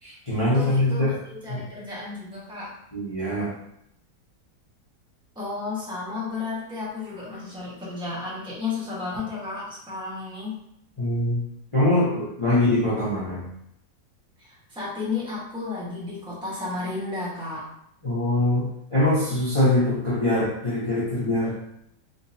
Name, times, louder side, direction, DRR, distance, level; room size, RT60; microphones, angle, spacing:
voice 1, 0.0-1.1 1.5-1.6 2.9-3.5 11.0-11.4 11.7-13.4 18.0-21.5, left 1 dB, 30° left, -8 dB, 0.6 m, -23 dB
voice 2, 0.5-2.7 5.3-10.6 14.4-17.6, left 3 dB, 5° right, -8 dB, 1.1 m, -33 dB
3.8 x 2.9 x 2.7 m, 0.76 s
omnidirectional pair, 2.0 m